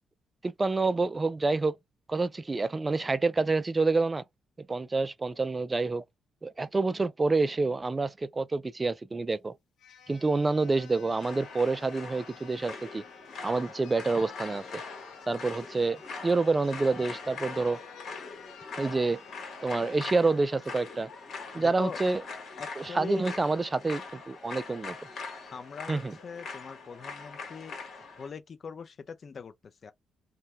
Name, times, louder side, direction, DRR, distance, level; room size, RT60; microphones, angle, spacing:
voice 1, 0.4-1.8 2.1-4.2 4.7-6.0 6.4-9.5 10.1-13.0 13.4-14.8 15.3-17.8 18.8-19.2 19.6-21.1 21.5-22.2 22.8-25.0 25.9-26.1, right 3 dB, 25° right, 0.3 m, -28 dB
sound 1, 9.3-9.4 9.8-20.1 20.6-20.8, left 8 dB, 80° left, 0.7 m, -52 dB
sound 2, 11.2-28.3, left 4 dB, 60° left, 1.4 m, -42 dB
voice 2, 21.6-22.0 22.6-23.3 25.5-27.8 28.2-29.9, left 5 dB, 45° left, 0.5 m, -41 dB
2.6 x 2.3 x 3.3 m
cardioid pair, 90°, 0 cm